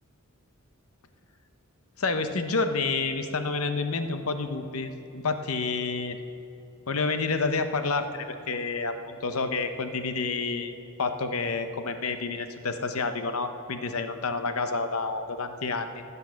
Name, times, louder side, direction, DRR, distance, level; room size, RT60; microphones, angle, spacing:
voice 1, 2.0-6.2 6.9-10.7 11.0-16.0, left 4 dB, 75° left, 8 dB, 0.9 m, -29 dB
15.0 x 9.6 x 6.4 m, 2.8 s
head